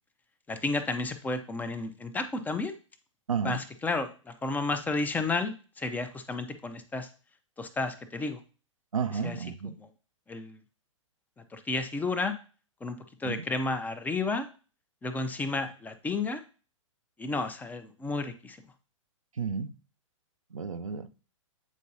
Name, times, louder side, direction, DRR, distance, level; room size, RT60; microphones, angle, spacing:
voice 1, 0.5-2.7 3.4-7.1 7.6-8.4 9.2-9.4 9.8-9.9 10.3-10.6 11.5-12.4 12.8-14.5 15.0-16.4 17.2-18.6, left 3 dB, 10° left, 0.6 m, -32 dB
voice 2, 3.3-3.6 8.9-9.8 13.2-13.4 19.3-19.7 20.5-21.1, right 6 dB, 85° right, 0.6 m, -32 dB
8.2 x 4.6 x 2.8 m
figure-of-eight pair, 110°, 17 cm